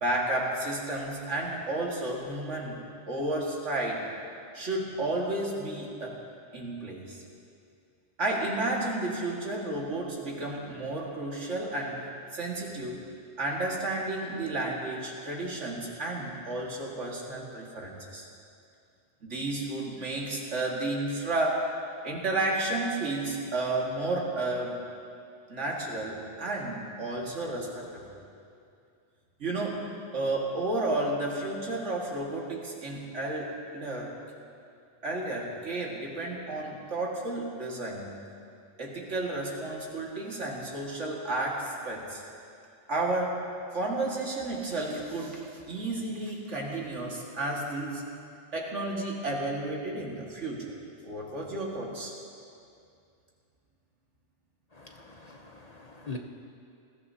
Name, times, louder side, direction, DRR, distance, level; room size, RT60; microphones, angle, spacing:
voice 1, 0.0-2.8 3.1-4.1 4.5-6.2 6.5-7.2 8.2-12.1 12.3-13.0 13.4-18.3 19.2-21.7 22.0-24.8 25.5-28.2 29.4-34.1 35.0-38.1 38.8-42.2 42.9-43.5 43.7-48.0 48.5-50.8 51.0-52.1, right 2 dB, 80° right, -2 dB, 2.2 m, -32 dB
voice 2, 54.7-56.2, left 3 dB, 40° left, 2 dB, 0.7 m, -43 dB
19.5 x 14.5 x 2.8 m, 2.4 s
omnidirectional pair, 1.2 m